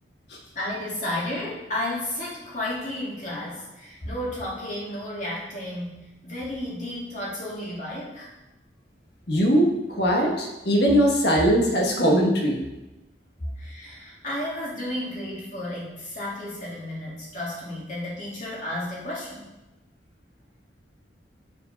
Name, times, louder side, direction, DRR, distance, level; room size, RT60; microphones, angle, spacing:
voice 1, 0.5-8.3 13.6-19.5, left 1 dB, 45° left, -6 dB, 2.4 m, -32 dB
voice 2, 9.3-12.6, equal, 65° left, 0 dB, 1.5 m, -20 dB
6.5 x 4.9 x 5.3 m, 1.0 s
head